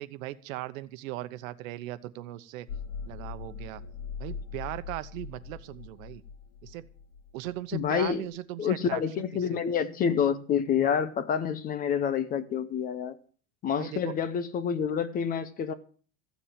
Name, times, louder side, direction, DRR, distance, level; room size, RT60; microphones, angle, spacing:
voice 1, 0.0-2.7 3.0-3.8 4.2-6.2 6.6-6.8 7.3-9.6 13.8-14.1, right 16 dB, 85° right, 1.1 m, -38 dB
sound 1, 2.7-8.1, left 6 dB, 80° left, 2.3 m, -41 dB
voice 2, 7.7-8.2 8.6-13.1 13.6-15.7, left 7 dB, 20° left, 0.7 m, -28 dB
14.5 x 7.2 x 7.6 m
cardioid pair, 170°, 40 cm